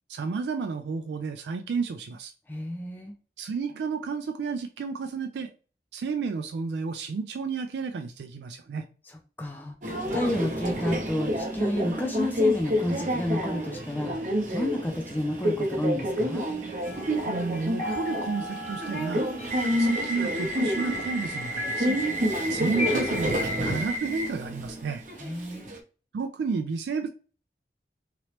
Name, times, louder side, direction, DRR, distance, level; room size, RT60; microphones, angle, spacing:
voice 1, 0.1-2.3 3.4-5.5 5.9-8.9 17.3-19.3 19.7-22.0 22.5-25.0 26.1-27.1, right 5 dB, 75° right, 0.3 m, -31 dB
voice 2, 2.5-3.1 9.1-9.8 10.1-16.5 25.2-25.7, left 1 dB, 10° left, 0.3 m, -31 dB
Subway metro underground, 9.8-25.8, equal, 45° right, 0.7 m, -29 dB
sound 1, 16.8-24.0, left 2 dB, 35° left, 0.8 m, -38 dB
3.0 x 2.9 x 2.9 m
head